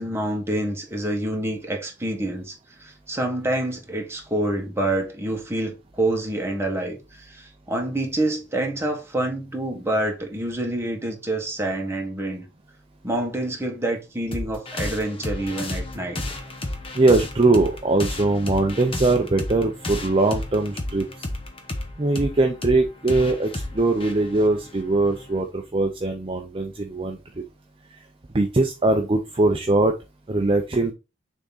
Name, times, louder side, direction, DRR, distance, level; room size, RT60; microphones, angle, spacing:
voice 1, 0.0-12.5 13.0-16.2, right 1 dB, 15° right, 1.5 m, -27 dB
sound 1, 14.3-25.4, left 1 dB, 30° left, 1.0 m, -32 dB
voice 2, 16.9-21.1 22.0-27.4 27.9-28.0 28.3-29.9 30.3-30.9, right 2 dB, 30° right, 0.6 m, -21 dB
6.5 x 3.7 x 4.0 m
head